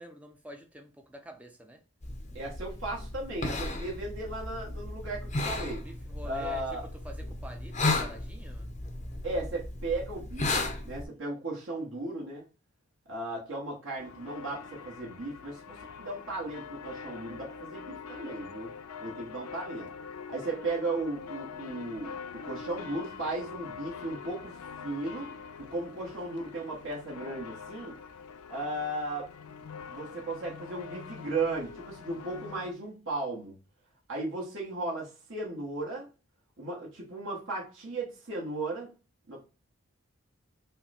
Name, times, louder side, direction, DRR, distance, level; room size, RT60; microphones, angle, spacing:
voice 1, 0.0-1.8 5.8-8.7, right 1 dB, 5° right, 0.6 m, -47 dB
sound 1, 2.0-11.0, left 2 dB, 30° left, 0.6 m, -34 dB
voice 2, 2.3-5.8 6.2-6.8 9.2-10.5 10.8-12.4 13.1-18.7 19.0-19.9 20.3-22.1 22.4-25.3 25.7-28.0 28.5-29.3 29.9-33.5 34.1-36.1 36.6-38.9 39.3-39.4, right 2 dB, 60° right, 1.3 m, -36 dB
sound 2, 14.0-32.7, left 6 dB, 85° left, 0.4 m, -44 dB
5.5 x 2.2 x 4.2 m
head